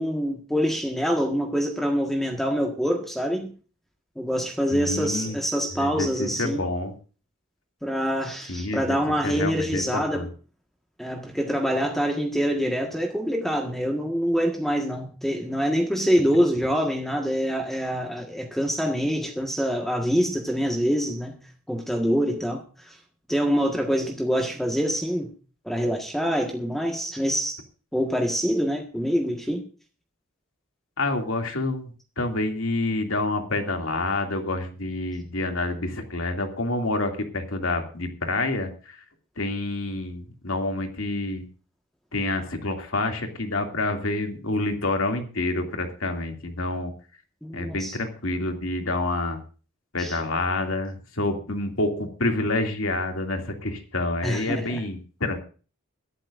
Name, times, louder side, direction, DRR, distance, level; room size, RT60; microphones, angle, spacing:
voice 1, 0.0-3.5 4.2-6.6 7.8-10.3 11.0-21.4 21.7-23.0 23.3-25.3 25.6-27.6 27.9-29.6 47.4-48.0 50.0-50.2 54.2-54.8, equal, ahead, 1.6 m, -25 dB
voice 2, 4.7-5.4 5.8-6.9 8.5-9.0 9.2-10.3 31.0-39.0 39.4-41.4 42.1-46.9 47.5-49.4 49.9-55.4, left 2 dB, 70° left, 2.6 m, -28 dB
22.0 x 12.0 x 2.6 m
head